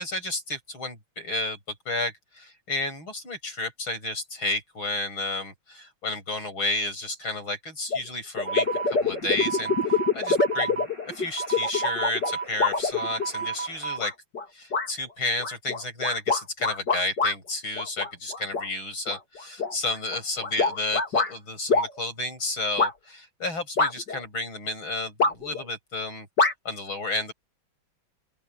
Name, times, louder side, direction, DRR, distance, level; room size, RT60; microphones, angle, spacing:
voice 1, 0.0-1.6 1.9-9.7 10.1-14.1 14.5-26.3 26.7-27.3, left 2 dB, 75° left, 8.8 m, -31 dB
sound 1, 7.9-8.0 8.4-13.4 14.0-14.4 14.7-14.9 15.4-17.3 17.8-18.7 19.1-21.3 21.7-21.9 22.8-22.9 23.8-24.2 25.2-25.6 26.4-26.5, left 4 dB, 55° left, 4.2 m, -25 dB
sound 2, 8.5-14.0, right 5 dB, 15° right, 4.9 m, -34 dB
open air
omnidirectional pair, 2.2 m